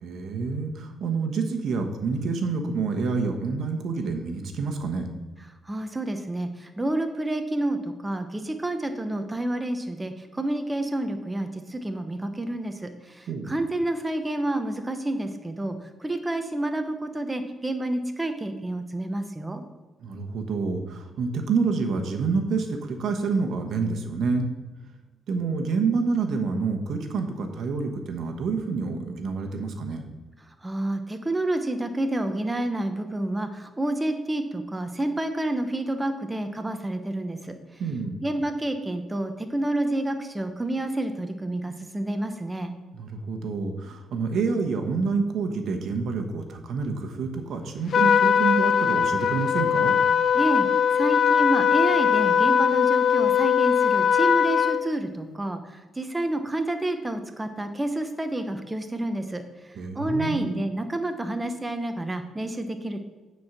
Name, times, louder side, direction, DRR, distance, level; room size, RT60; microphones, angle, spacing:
voice 1, 0.0-5.1 13.3-13.5 20.0-24.5 25.3-30.0 37.8-38.2 42.9-49.9 59.7-60.5, right 4 dB, 65° right, 4 dB, 1.1 m, -28 dB
voice 2, 5.6-19.6 30.6-37.5 38.2-42.7 50.3-63.0, right 1 dB, 15° right, 6 dB, 0.8 m, -29 dB
Trumpet, 47.9-54.8, left 8 dB, 60° left, 0.5 m, -21 dB
9.3 x 4.6 x 5.9 m, 1.2 s
cardioid pair, 90°, 0 cm